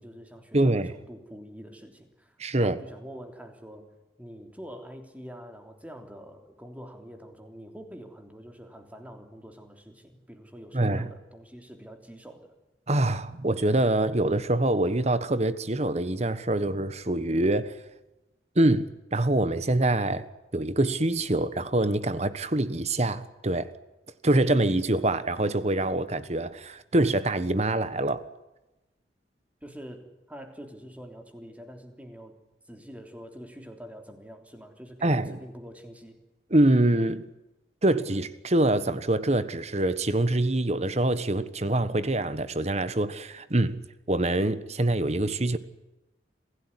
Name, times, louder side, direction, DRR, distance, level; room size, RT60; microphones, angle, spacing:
voice 1, 0.0-3.9 4.2-12.6 29.6-32.3 32.7-36.2, equal, 10° right, 3.3 m, -45 dB
voice 2, 0.5-0.9 2.4-2.8 10.7-11.1 12.9-17.7 18.5-20.2 20.5-23.7 24.2-28.2 35.0-35.4 36.5-37.3 37.8-43.8 44.1-45.6, right 1 dB, 40° right, 1.4 m, -25 dB
27.5 x 16.5 x 9.9 m
head